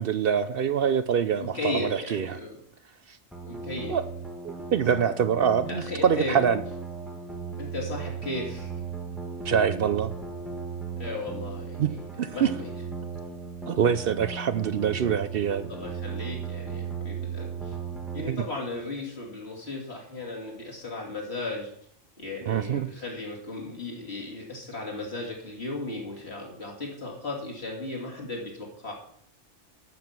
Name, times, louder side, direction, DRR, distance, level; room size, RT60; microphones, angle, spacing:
voice 1, 0.0-2.4 3.9-4.0 4.4-6.6 9.5-10.1 11.8-11.9 12.2-12.5 13.7-15.7 18.3-18.4 22.5-22.9, right 7 dB, 60° right, 0.7 m, -25 dB
voice 2, 1.4-2.6 3.4-4.0 5.7-6.4 7.6-8.7 11.0-12.7 15.7-17.7 18.1-21.7 22.2-28.9, left 2 dB, 55° left, 3.3 m, -35 dB
sound 1, 3.3-18.3, right 5 dB, ahead, 1.2 m, -36 dB
12.0 x 7.2 x 6.0 m
omnidirectional pair, 1.3 m